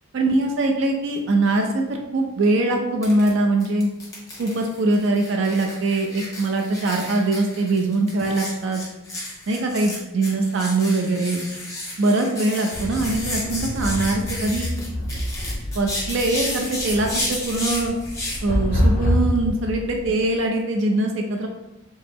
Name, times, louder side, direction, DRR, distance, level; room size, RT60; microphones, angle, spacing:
voice 1, 0.1-3.9 4.4-8.8 9.5-11.4 12.0-14.7 15.7-17.9 18.4-21.5, right 2 dB, 65° right, 3 dB, 0.4 m, -22 dB
sound 1, 3.0-3.3 3.6-18.4, left 1 dB, 15° left, 1.1 m, -32 dB
sound 2, 12.7-20.4, left 1 dB, 45° left, 0.5 m, -26 dB
3.2 x 2.9 x 3.5 m, 0.96 s
head